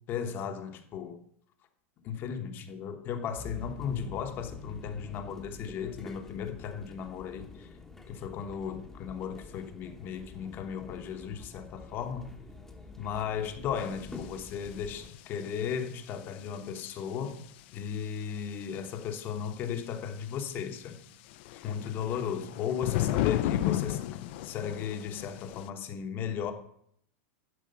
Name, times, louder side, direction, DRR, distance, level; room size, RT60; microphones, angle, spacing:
voice 1, 0.1-1.2 2.0-7.7 8.1-12.3 13.0-17.4 17.7-21.0 21.5-26.5, left 7 dB, 30° left, 1.0 m, -36 dB
sound 1, 3.3-15.1, left 4 dB, 5° left, 1.0 m, -47 dB
sound 2, 13.9-14.0 14.7-14.8 14.9-15.2 17.4-17.5 18.6-18.8 21.3-25.7, left 13 dB, 50° left, 0.5 m, -32 dB
11.0 x 4.9 x 6.7 m
supercardioid pair, 165°, 8 cm